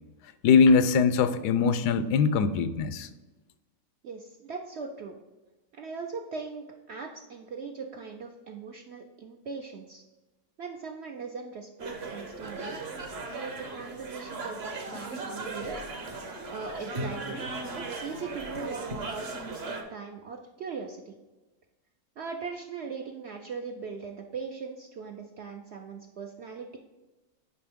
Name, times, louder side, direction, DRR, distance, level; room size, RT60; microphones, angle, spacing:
voice 1, 0.4-3.1, left 5 dB, 85° left, 12 dB, 1.2 m, -22 dB
voice 2, 4.0-5.2 5.7-10.0 10.6-12.8 13.3-15.7 16.5-17.5 17.7-21.1 22.2-26.8, right 5 dB, 65° right, 3 dB, 0.6 m, -40 dB
sound 1, 11.8-19.8, right 2 dB, 45° right, 1.1 m, -37 dB
9.3 x 5.2 x 3.6 m, 1.1 s
omnidirectional pair, 1.7 m